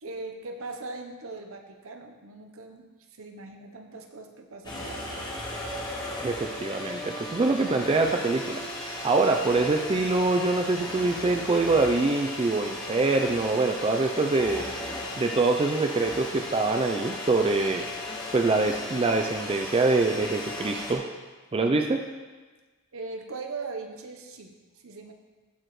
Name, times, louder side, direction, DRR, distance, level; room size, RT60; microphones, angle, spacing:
voice 1, 0.0-5.3 22.9-25.1, right 3 dB, 65° right, 5 dB, 0.8 m, -40 dB
sound 1, 4.6-20.9, left 1 dB, 20° left, 1.2 m, -36 dB
voice 2, 6.2-8.6 9.0-14.6 15.2-17.9 18.3-21.1 21.5-22.0, right 3 dB, 25° right, 4 dB, 0.4 m, -24 dB
13.5 x 4.9 x 3.1 m, 1.3 s
head